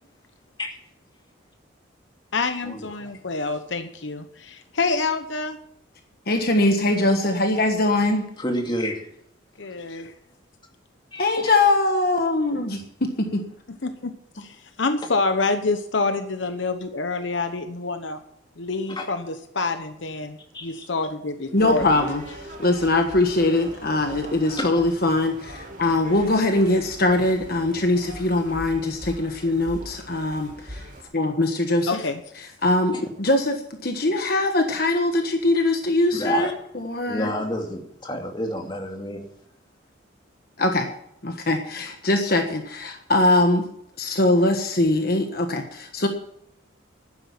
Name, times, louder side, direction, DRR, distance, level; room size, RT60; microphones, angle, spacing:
voice 1, 2.3-5.6 9.6-10.1 13.7-18.2 18.6-21.9 31.9-32.2, left 3 dB, 70° left, 8 dB, 1.0 m, -27 dB
voice 2, 6.3-8.2 11.2-13.4 21.5-30.9 31.1-32.0 32.6-37.3 40.6-40.9 41.2-43.6 44.0-46.1, left 2 dB, 50° left, 5 dB, 1.4 m, -22 dB
voice 3, 8.4-9.0 11.1-11.5 18.9-19.1 20.5-20.8 24.6-24.7 36.1-36.5 37.1-39.2, equal, 25° left, 2 dB, 2.4 m, -29 dB
sound 1, 21.6-31.0, right 1 dB, 40° right, 2.9 m, -41 dB
12.0 x 10.0 x 7.3 m, 0.75 s
head